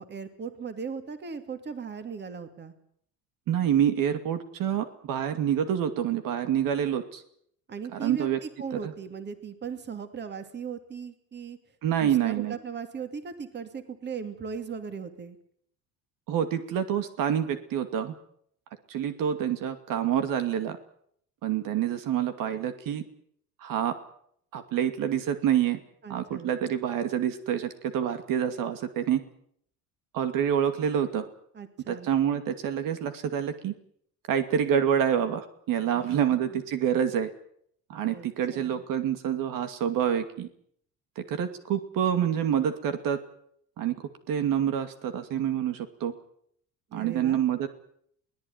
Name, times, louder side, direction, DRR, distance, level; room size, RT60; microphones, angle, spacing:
voice 1, 0.0-2.7 7.7-11.6 12.0-15.4 26.0-26.5 31.5-32.1 35.9-36.6 38.0-38.3 38.5-38.8 46.9-47.5, right 6 dB, 30° right, 8 dB, 2.6 m, -38 dB
voice 2, 3.5-7.2 7.9-8.4 8.8-8.9 11.8-12.6 16.3-18.1 18.9-20.8 21.4-23.0 23.6-23.9 24.5-25.8 26.1-29.2 30.1-31.3 31.9-33.7 34.3-37.3 37.9-40.5 41.2-43.2 43.8-44.0 44.3-46.1 46.9-47.7, right 9 dB, 70° right, 9 dB, 2.5 m, -27 dB
22.5 x 18.0 x 9.5 m, 0.67 s
cardioid pair, 150°, 35 cm